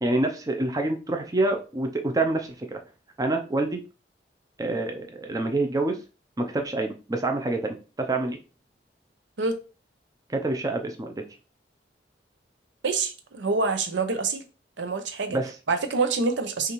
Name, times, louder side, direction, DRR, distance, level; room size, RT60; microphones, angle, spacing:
voice 1, 0.0-2.8 3.2-3.8 4.6-6.0 6.4-8.4 10.3-11.1 15.3-15.5, right 2 dB, 20° right, 4 dB, 0.5 m, -27 dB
voice 2, 12.8-14.4 14.8-15.4 15.7-16.7, right 4 dB, 90° right, 7 dB, 0.7 m, -26 dB
5.6 x 2.5 x 3.0 m, 0.33 s
head